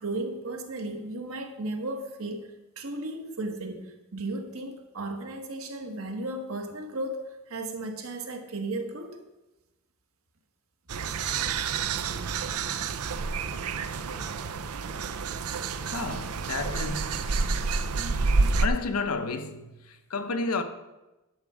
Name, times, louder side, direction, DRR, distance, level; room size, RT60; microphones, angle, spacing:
voice 1, 0.0-2.5 2.8-9.2, right 2 dB, 70° right, 1.5 m, -35 dB
sound 1, 10.9-18.7, right 4 dB, 85° right, 0.6 m, -29 dB
voice 2, 15.9-17.6 17.9-20.6, left 3 dB, 85° left, 0.9 m, -32 dB
11.0 x 7.3 x 4.9 m
head